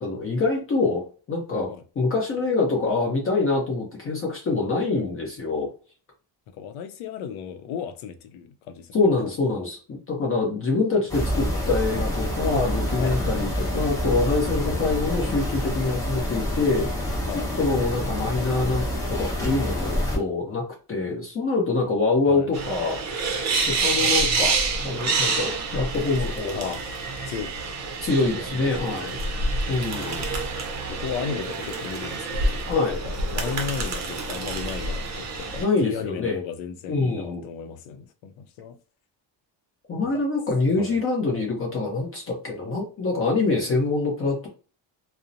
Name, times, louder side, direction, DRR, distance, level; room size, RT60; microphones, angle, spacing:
voice 1, 0.0-1.7 2.0-5.7 8.9-16.9 17.6-23.0 23.7-26.8 28.0-29.2 29.7-30.2 32.7-33.0 35.6-36.4 36.9-37.4 39.9-44.5, left 3 dB, 30° left, 0.6 m, -25 dB
voice 2, 6.5-9.0 11.0-11.1 11.4-11.8 12.5-12.7 13.0-13.2 17.3-17.5 22.3-22.5 26.5-26.8 27.3-27.5 28.4-29.4 30.9-32.8 33.0-38.8 40.1-40.2 40.8-41.0, left 7 dB, 85° left, 0.6 m, -35 dB
sound 1, 11.1-20.2, equal, 10° left, 0.9 m, -27 dB
sound 2, 22.5-35.6, right 3 dB, 35° right, 0.6 m, -27 dB
2.7 x 2.0 x 2.5 m
cardioid pair, 145°, 46 cm